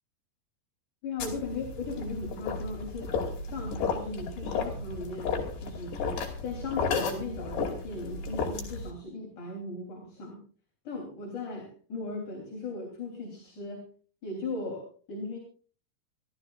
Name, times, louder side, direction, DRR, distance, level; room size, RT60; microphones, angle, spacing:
voice 1, 1.0-3.1 3.4-6.0 6.4-10.4 10.8-13.9 14.2-15.4, left 3 dB, 50° left, 0 dB, 4.7 m, -38 dB
sound 1, 1.2-8.9, left 5 dB, 80° left, 4.9 m, -33 dB
28.0 x 13.5 x 2.5 m, 0.40 s
omnidirectional pair, 4.7 m